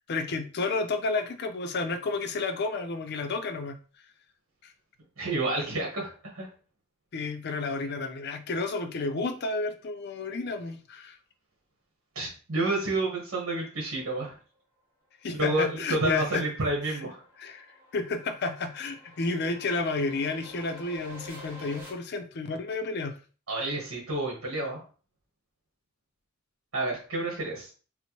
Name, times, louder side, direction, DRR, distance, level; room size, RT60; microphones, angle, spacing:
voice 1, 0.1-3.8 4.6-4.7 7.1-11.2 15.2-16.5 16.9-17.0 17.4-23.2, left 3 dB, 50° left, 6 dB, 0.5 m, -31 dB
voice 2, 5.2-6.5 12.1-14.4 15.4-17.2 23.5-24.8 26.7-27.7, right 2 dB, 80° right, -1 dB, 1.1 m, -29 dB
sound 1, 16.4-21.9, equal, 10° right, 1.0 m, -50 dB
4.3 x 2.1 x 2.9 m, 0.37 s
head